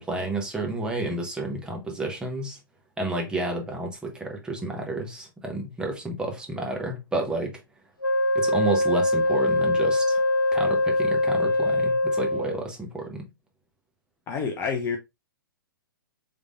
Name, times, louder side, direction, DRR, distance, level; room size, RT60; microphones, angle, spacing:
voice 1, 0.0-2.6 3.0-7.6 8.3-10.2 10.5-13.3, right 2 dB, 5° right, 1.0 m, -31 dB
Wind instrument woodwind instrument, 8.0-12.6, left 1 dB, 70° left, 0.8 m, -23 dB
voice 2, 14.3-15.0, left 5 dB, 20° left, 0.7 m, -28 dB
4.9 x 3.5 x 2.5 m
figure-of-eight pair, 115°, 11 cm